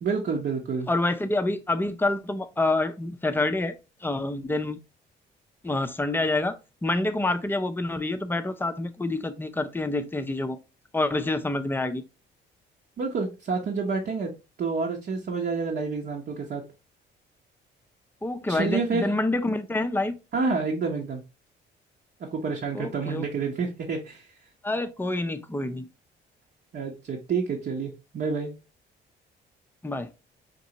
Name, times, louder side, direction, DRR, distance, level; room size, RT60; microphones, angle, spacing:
voice 1, 0.0-0.9 13.0-14.3 14.6-16.6 18.5-19.1 20.3-21.2 22.2-24.3 26.7-28.5, right 4 dB, 55° right, 0.9 m, -28 dB
voice 2, 0.9-3.7 4.0-4.8 5.6-10.6 10.9-12.0 18.2-20.2 22.7-23.2 24.6-25.9 29.8-30.1, left 2 dB, 10° left, 0.5 m, -27 dB
5.2 x 2.7 x 2.8 m
cardioid pair, 90°, 20 cm